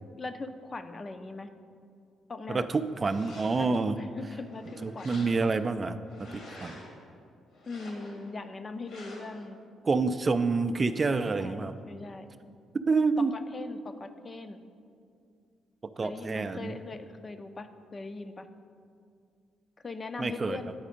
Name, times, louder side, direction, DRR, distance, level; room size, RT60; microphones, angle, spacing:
voice 1, 0.2-1.5 2.3-2.7 3.6-4.6 4.9-5.3 7.7-9.6 11.2-12.3 13.2-14.6 16.0-18.5 19.8-20.7, left 3 dB, 40° left, 8 dB, 0.5 m, -40 dB
voice 2, 2.5-4.0 4.8-6.8 9.8-11.7 12.9-13.3 16.0-16.7 20.2-20.6, right 4 dB, 40° right, 10 dB, 0.4 m, -28 dB
sound 1, 2.9-3.8 4.3-5.7 6.1-7.0 7.5-8.3 8.9-9.4, left 1 dB, 75° left, 1.6 m, -49 dB
9.4 x 4.1 x 5.1 m, 2.3 s
hypercardioid pair, 50°, 0 cm